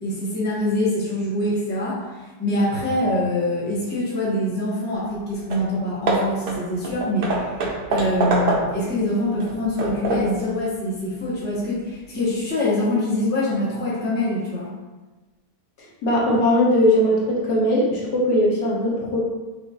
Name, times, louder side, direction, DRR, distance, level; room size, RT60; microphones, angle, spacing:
voice 1, 0.0-2.0 2.4-7.5 7.9-14.7, left 1 dB, 10° left, -7 dB, 0.7 m, -24 dB
Hammer / Wood, 5.1-5.2 5.5-5.7 6.1-8.9 9.4-10.4, right 2 dB, 60° right, 0.5 m, -25 dB
voice 2, 16.0-19.2, left 1 dB, 70° left, -3 dB, 1.4 m, -19 dB
6.3 x 2.5 x 2.8 m, 1.2 s
omnidirectional pair, 1.8 m